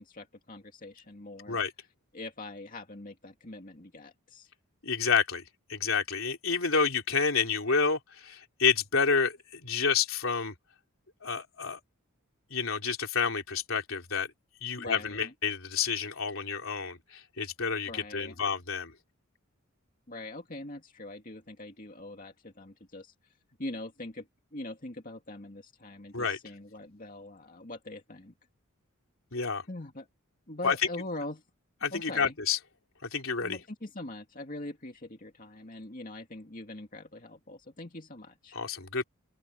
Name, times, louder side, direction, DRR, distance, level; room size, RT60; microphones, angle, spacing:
voice 1, 0.0-1.6 2.1-4.5 14.8-15.3 17.9-18.4 20.1-23.1 23.6-28.3 29.7-30.1 30.5-31.4 31.9-32.4 33.4-38.6, left 2 dB, 40° left, 2.4 m, -43 dB
voice 2, 4.8-5.4 5.7-10.5 11.2-11.8 12.5-14.3 14.6-18.9 26.1-26.4 29.3-29.6 30.6-30.8 31.8-32.6 33.1-33.6 38.5-39.0, left 5 dB, 65° left, 3.5 m, -29 dB
open air
head